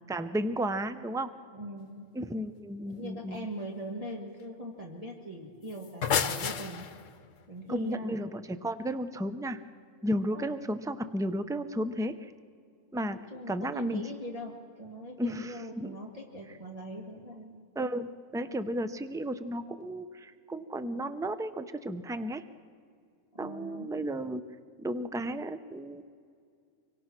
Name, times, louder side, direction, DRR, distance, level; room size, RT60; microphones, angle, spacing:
voice 1, 0.1-1.3 2.1-3.5 7.7-9.6 10.0-12.3 12.9-13.2 13.5-14.0 15.2-16.0 17.8-22.4 23.4-24.4 24.8-26.0, right 1 dB, 5° right, 11 dB, 0.3 m, -33 dB
voice 2, 1.5-2.1 2.8-6.8 7.5-8.2 10.3-10.5 13.3-17.5 23.3-23.9, equal, 25° right, -1 dB, 1.9 m, -41 dB
sound 1, 5.7-7.2, left 7 dB, 65° left, 1.3 m, -30 dB
25.0 x 24.0 x 6.0 m, 2.3 s
omnidirectional pair, 1.5 m